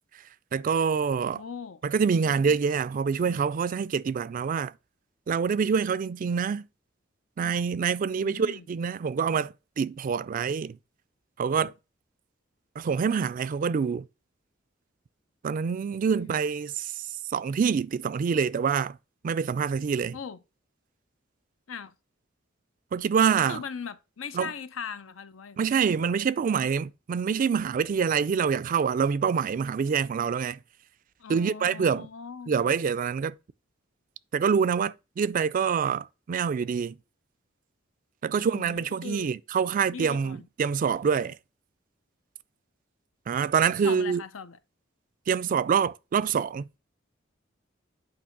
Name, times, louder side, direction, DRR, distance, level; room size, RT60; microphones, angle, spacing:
voice 1, 0.5-1.4 1.8-4.7 5.3-6.6 7.4-10.8 11.4-11.7 12.8-14.1 15.4-19.0 19.2-20.2 22.9-23.6 24.3-24.5 25.6-30.6 31.3-32.1 32.5-33.3 34.3-37.0 38.2-41.4 43.3-44.2 45.3-46.8, right 6 dB, 45° right, 0.3 m, -26 dB
voice 2, 1.3-1.8 8.2-8.7 16.1-16.3 20.1-20.4 21.7-21.9 23.4-25.7 31.2-32.8 38.4-39.3 39.9-40.5 43.8-44.6, left 6 dB, 85° left, 0.6 m, -39 dB
8.6 x 2.9 x 5.9 m
head